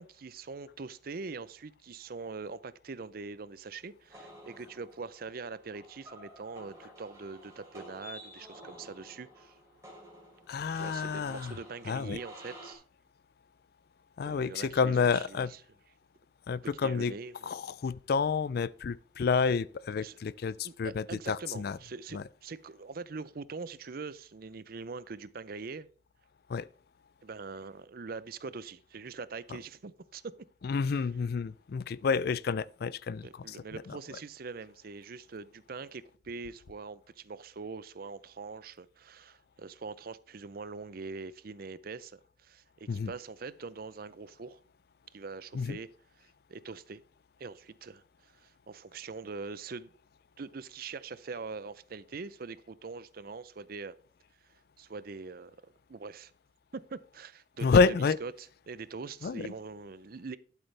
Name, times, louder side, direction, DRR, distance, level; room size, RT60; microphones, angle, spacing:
voice 1, 0.0-9.6 10.7-12.8 14.2-15.6 16.8-17.5 20.0-20.2 20.6-25.9 27.2-30.2 30.9-31.1 33.2-44.6 45.1-45.9 46.2-47.0 47.4-49.9 50.4-54.0 54.4-56.3 56.7-60.4, right 4 dB, 50° right, 0.5 m, -43 dB
sound 1, 4.1-12.7, equal, 15° right, 3.1 m, -51 dB
voice 2, 10.5-11.5 11.9-12.2 14.2-15.5 16.5-17.1 17.4-21.8 22.1-22.2 26.5-26.7 30.6-33.3 42.9-43.1 45.5-45.8 57.6-58.2 59.2-59.5, left 5 dB, 55° left, 0.4 m, -29 dB
11.5 x 8.2 x 3.3 m
head